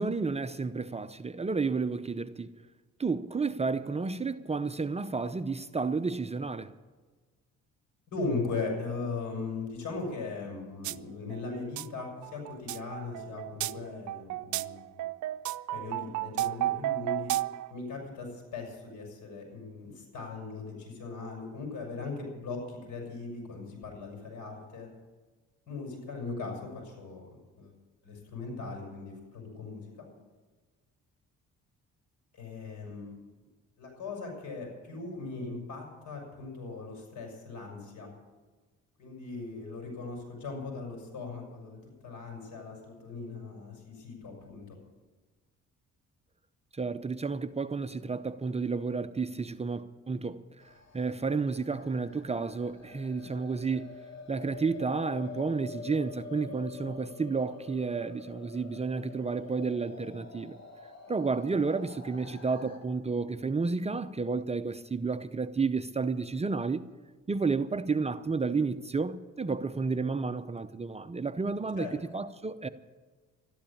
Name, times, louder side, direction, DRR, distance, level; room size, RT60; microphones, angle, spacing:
voice 1, 0.0-2.5 3.0-6.7 46.7-50.4 50.9-53.9 54.3-60.6 61.1-66.8 67.3-72.7, right 4 dB, 20° right, 0.6 m, -31 dB
voice 2, 8.1-15.1 15.7-17.4 17.7-24.9 25.7-27.3 27.6-27.7 28.0-30.1 32.3-33.1 33.8-38.1 39.0-44.8 71.8-71.9, left 3 dB, 80° left, 6.3 m, -39 dB
sound 1, 10.8-11.0 11.3-17.7, right 15 dB, 75° right, 0.5 m, -33 dB
sound 2, 50.6-62.8, left 4 dB, 60° left, 3.3 m, -47 dB
13.0 x 12.0 x 8.6 m
cardioid pair, 90°, 30 cm